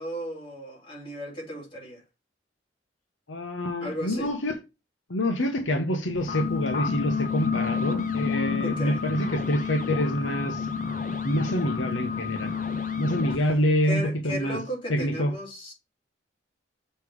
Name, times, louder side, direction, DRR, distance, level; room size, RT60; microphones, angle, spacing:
voice 1, 0.0-2.0 3.8-4.3 8.6-9.0 13.9-15.7, equal, 25° left, 2.8 m, -35 dB
voice 2, 3.3-4.6 5.1-10.7 11.2-12.5 13.0-14.6 14.9-15.3, equal, 80° left, 1.1 m, -26 dB
sound 1, 6.2-13.4, left 6 dB, 40° left, 0.6 m, -29 dB
6.8 x 3.3 x 4.8 m
head